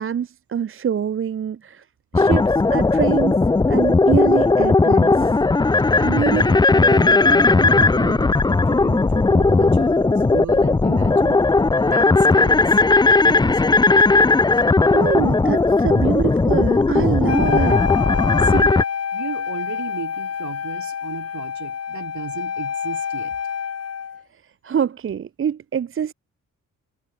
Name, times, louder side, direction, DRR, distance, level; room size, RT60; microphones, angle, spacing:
voice 1, 0.0-1.8 2.1-2.4 2.7-3.4 3.7-5.3 14.9-17.8 24.6-26.1, right 8 dB, 40° right, 0.7 m, -24 dB
sound 1, 2.1-18.8, left 3 dB, 15° left, 0.5 m, -16 dB
voice 2, 6.0-11.4 11.8-12.8 13.2-13.8 14.5-14.6 18.4-18.8 19.1-23.4, right 9 dB, 60° right, 2.5 m, -33 dB
Wind instrument woodwind instrument, 17.3-24.2, left 7 dB, 50° left, 1.9 m, -27 dB
cardioid pair, 85°, 32 cm